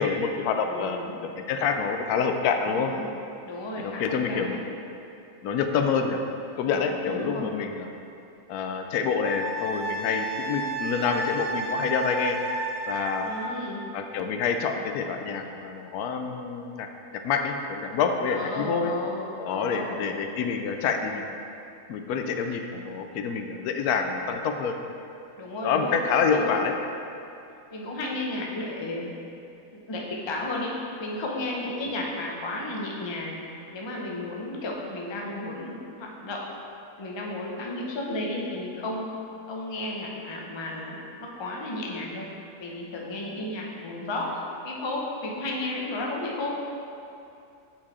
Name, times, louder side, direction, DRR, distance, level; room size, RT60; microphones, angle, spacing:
voice 1, 0.0-2.9 3.8-4.6 5.4-6.2 6.6-7.9 8.5-12.4 12.9-13.3 13.9-18.9 19.4-21.4 21.9-24.7 25.6-26.7, left 5 dB, 85° left, 5 dB, 1.1 m, -27 dB
voice 2, 0.6-1.2 2.5-3.1 3.5-4.6 6.6-7.8 13.2-13.8 18.3-20.0 25.4-26.0 26.3-26.6 27.7-29.1 29.7-33.4 33.7-36.4 37.0-39.1 39.5-42.3 42.6-46.6, left 2 dB, 30° left, -2 dB, 0.6 m, -33 dB
Wind instrument woodwind instrument, 9.3-13.6, right 2 dB, 85° right, 1.2 m, -32 dB
7.5 x 4.7 x 4.2 m, 2.7 s
omnidirectional pair, 1.6 m